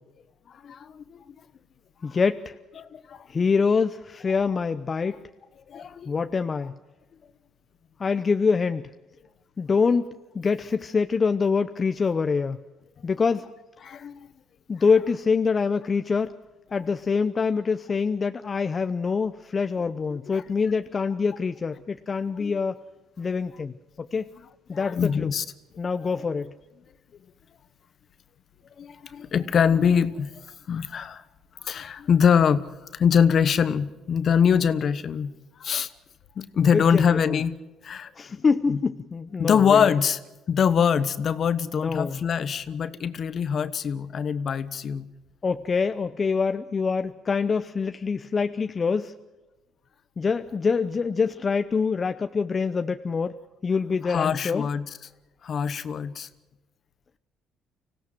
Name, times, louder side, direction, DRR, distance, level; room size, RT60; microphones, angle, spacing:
voice 1, 0.5-1.3 2.8-3.3 5.7-6.1 13.8-14.3 20.1-20.4 22.4-22.5 24.7-25.4 28.8-30.3 30.7-31.2 31.6-35.3 35.6-35.9 36.4-37.5 37.8-38.8 39.4-40.2 40.5-45.1 54.0-55.0 55.4-56.3, left 7 dB, 55° left, 14 dB, 1.1 m, -24 dB
voice 2, 2.0-2.5 3.3-5.2 6.1-6.7 8.0-8.9 9.6-10.1 10.3-12.6 13.0-13.5 14.7-16.3 16.7-22.8 23.2-23.7 24.0-24.3 24.7-25.3 25.8-26.5 36.7-37.4 38.2-39.9 41.7-42.2 45.4-49.1 50.2-53.4 53.6-54.7, left 5 dB, 35° left, 9 dB, 0.7 m, -25 dB
25.0 x 16.5 x 7.7 m, 1.1 s
supercardioid pair, 75°, 0 cm